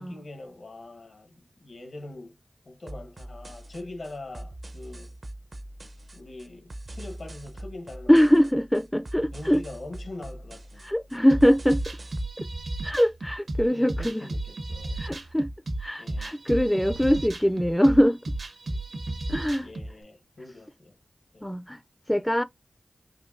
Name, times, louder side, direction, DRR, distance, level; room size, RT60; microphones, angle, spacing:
voice 1, 0.0-2.4 2.6-5.2 6.1-8.5 9.3-11.3 13.7-15.0 16.0-16.4 18.7-18.8 19.6-21.0 21.3-21.5, left 2 dB, 75° left, 1.0 m, -43 dB
sound 1, 2.9-12.3, right 1 dB, 60° right, 0.6 m, -43 dB
voice 2, 8.1-9.6 10.8-11.8 12.8-14.3 15.0-15.5 15.8-18.2 19.3-19.7 21.4-21.8 22.1-22.4, equal, 10° left, 0.3 m, -22 dB
sound 2, 11.3-19.9, right 1 dB, 80° right, 1.1 m, -33 dB
4.4 x 2.6 x 2.5 m
cardioid pair, 40°, 0 cm